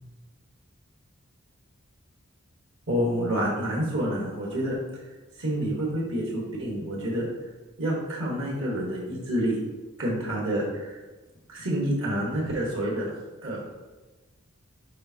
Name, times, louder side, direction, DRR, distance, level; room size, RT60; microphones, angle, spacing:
voice 1, 2.9-4.8 5.4-7.3 7.8-9.6 10.0-11.0 11.5-13.6, equal, 65° right, -3 dB, 1.4 m, -28 dB
6.6 x 5.1 x 2.8 m, 1.2 s
head